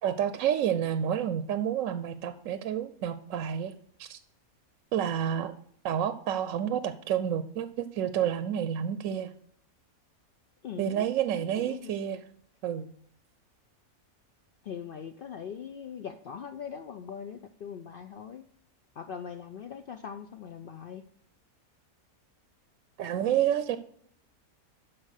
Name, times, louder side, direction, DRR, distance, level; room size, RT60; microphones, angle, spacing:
voice 1, 0.0-3.7 4.0-4.2 4.9-5.5 5.8-9.3 10.8-12.2 12.6-12.9 23.0-23.8, right 9 dB, 70° right, 12 dB, 0.9 m, -29 dB
voice 2, 10.6-11.1 11.3-11.9 14.6-18.4 19.0-21.0, left 7 dB, 80° left, 8 dB, 0.4 m, -41 dB
12.0 x 4.4 x 6.4 m, 0.65 s
omnidirectional pair, 1.5 m